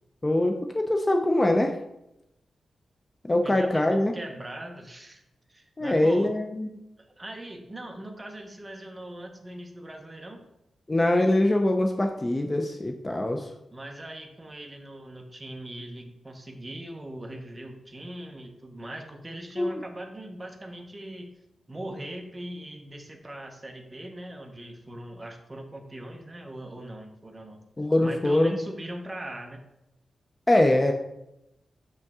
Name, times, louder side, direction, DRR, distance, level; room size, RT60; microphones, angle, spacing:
voice 1, 0.2-1.8 3.2-4.1 5.8-6.7 10.9-13.5 19.6-19.8 27.8-28.6 30.5-30.9, left 1 dB, 20° left, 4 dB, 0.4 m, -23 dB
voice 2, 3.4-5.2 5.5-6.3 7.0-10.4 13.7-21.4 21.7-27.6 28.0-29.6, right 1 dB, 20° right, 3 dB, 0.9 m, -40 dB
6.3 x 5.4 x 3.6 m, 0.87 s
wide cardioid pair, 140°, 0 cm